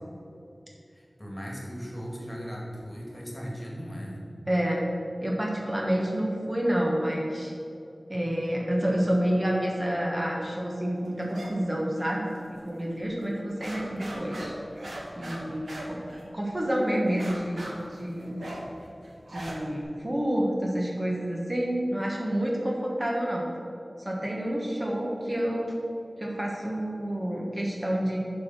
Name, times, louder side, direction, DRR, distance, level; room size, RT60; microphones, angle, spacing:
voice 1, 0.9-4.2, equal, 25° left, -3 dB, 2.0 m, -38 dB
voice 2, 4.5-4.8 5.2-7.5 8.1-14.5 15.2-16.0 16.3-18.4 19.3-23.5 24.0-25.8 26.2-28.2, equal, 30° right, -2 dB, 1.3 m, -28 dB
sound 1, 11.3-11.5 11.8-12.6 12.9-13.0 13.4-16.6 17.1-19.8, right 1 dB, 90° right, 1.3 m, -40 dB
7.2 x 4.8 x 6.1 m, 2.7 s
wide cardioid pair, 45°, 0 cm